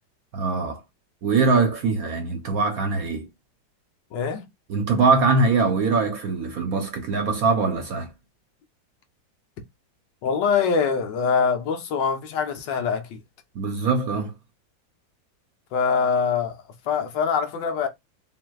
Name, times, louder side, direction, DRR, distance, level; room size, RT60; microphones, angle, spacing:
voice 1, 0.3-0.8 1.2-3.3 4.7-8.1 13.5-14.3, right 4 dB, 60° right, 1.0 m, -22 dB
voice 2, 4.1-4.4 10.2-13.2 15.7-17.9, left 6 dB, 70° left, 1.4 m, -24 dB
5.6 x 2.6 x 2.3 m
omnidirectional pair, 2.1 m